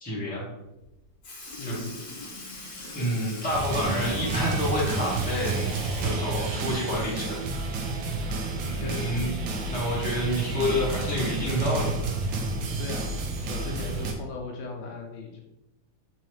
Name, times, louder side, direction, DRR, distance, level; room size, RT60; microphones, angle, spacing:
voice 1, 0.0-0.5 1.6-1.8 2.9-5.6 6.0-7.4 8.6-9.4 9.7-11.9, left 1 dB, 5° left, -7 dB, 0.9 m, -28 dB
Sink (filling or washing) / Liquid, 0.8-0.9 1.2-7.3 7.7-7.8 9.3-9.4 10.4-10.5 11.3-11.5 12.3-12.4, left 2 dB, 50° left, 1.1 m, -42 dB
voice 2, 1.6-2.0 8.7-9.3 12.8-13.1 13.5-15.4, left 3 dB, 75° left, 1 dB, 1.2 m, -37 dB
sound 1, 3.5-14.1, right 3 dB, 75° right, 1.3 m, -30 dB
3.9 x 3.1 x 3.1 m, 0.91 s
omnidirectional pair, 2.1 m